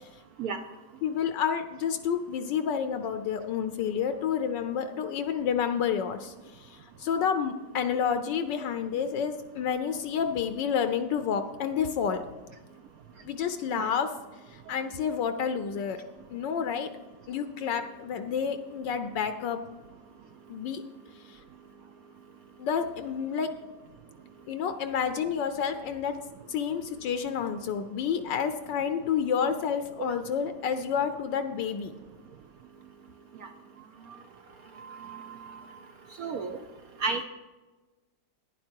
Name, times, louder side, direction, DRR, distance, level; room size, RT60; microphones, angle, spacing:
voice 1, 1.0-12.2 13.2-14.1 14.5-16.0 16.3-16.9 17.3-19.6 20.5-20.8 21.3-21.4 22.6-23.6 24.5-26.2 26.5-31.9, left 7 dB, 75° left, 9 dB, 1.2 m, -29 dB
voice 2, 34.8-35.6 36.2-36.6 37.0-37.2, right 4 dB, 65° right, 6 dB, 0.9 m, -33 dB
11.5 x 10.5 x 4.5 m, 1.2 s
omnidirectional pair, 2.1 m